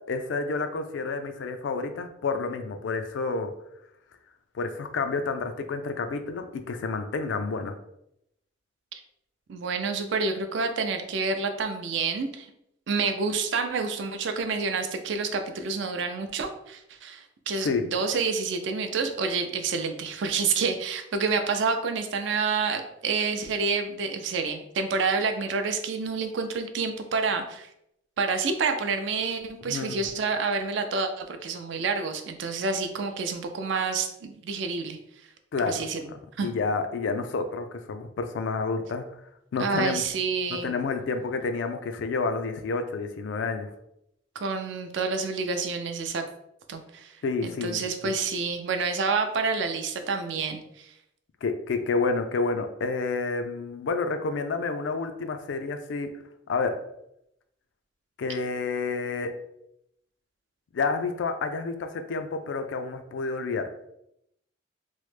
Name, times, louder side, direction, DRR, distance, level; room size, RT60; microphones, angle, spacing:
voice 1, 0.1-3.5 4.5-7.7 17.6-17.8 29.6-30.0 35.5-35.8 36.1-39.0 39.5-40.0 40.5-43.7 47.2-48.1 51.4-56.1 56.5-56.8 58.2-59.3 60.7-63.6, left 4 dB, 80° left, 7 dB, 0.4 m, -29 dB
voice 2, 9.5-12.5 12.9-27.7 28.2-35.0 35.7-36.0 36.4-36.5 39.6-40.7 44.4-46.2 46.7-47.2 47.4-50.9, right 4 dB, 75° right, 6 dB, 0.4 m, -28 dB
3.0 x 2.0 x 3.1 m, 0.79 s
head